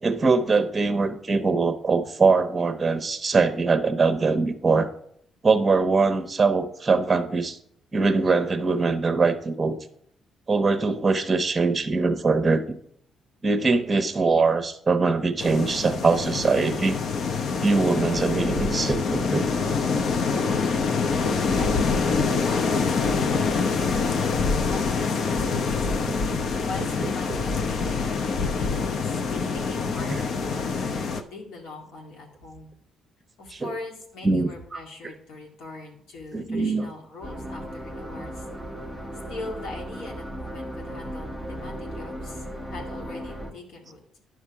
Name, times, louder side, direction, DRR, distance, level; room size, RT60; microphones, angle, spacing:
voice 1, 0.0-4.9 5.4-7.6 7.9-9.7 10.5-12.6 13.4-17.0 17.6-19.5 26.1-26.2 27.3-27.4 30.1-30.2 33.5-33.7 34.2-34.5 36.3-36.9, right 4 dB, 30° right, 8 dB, 0.9 m, -22 dB
sound 1, 15.4-31.2, left 4 dB, 60° left, 0.8 m, -25 dB
voice 2, 21.5-26.1 26.6-32.7 33.4-38.4 39.3-44.0, left 3 dB, 85° left, 0 dB, 2.0 m, -40 dB
sound 2, 37.2-43.5, equal, 15° left, 1.2 m, -36 dB
9.9 x 6.1 x 4.7 m, 0.68 s
cardioid pair, 90°, 0 cm